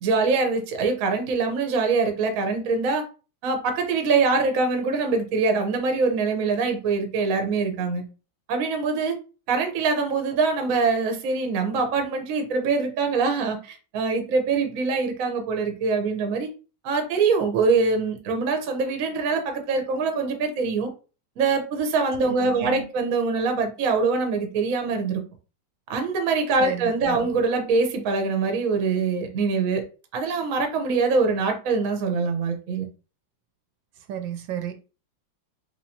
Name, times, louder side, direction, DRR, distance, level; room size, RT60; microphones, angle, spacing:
voice 1, 0.0-3.0 3.4-8.0 8.5-9.1 9.5-16.5 16.8-20.9 21.4-25.2 25.9-29.8 30.1-32.9, right 4 dB, 60° right, 1.0 m, -24 dB
voice 2, 22.2-22.9 26.6-27.3 34.1-34.7, right 10 dB, 80° right, 1.3 m, -33 dB
3.4 x 3.0 x 2.7 m
omnidirectional pair, 2.1 m